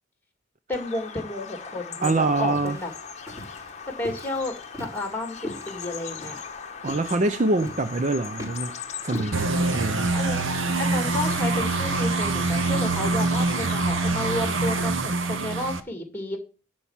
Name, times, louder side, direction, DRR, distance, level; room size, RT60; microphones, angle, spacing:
Bird vocalization bird call bird song, 0.7-14.8, left 6 dB, 35° left, 1.0 m, -39 dB
voice 1, 0.7-2.9 4.0-6.4 10.1-10.4 10.8-16.4, left 1 dB, 10° left, 2.2 m, -32 dB
sound 1, 2.0-9.8, left 1 dB, 20° right, 4.3 m, -41 dB
voice 2, 2.0-2.8 6.8-8.8 9.0-10.2, right 2 dB, 35° right, 0.5 m, -25 dB
sound 2, 9.3-15.8, right 3 dB, 70° right, 1.0 m, -25 dB
11.5 x 4.6 x 7.2 m
head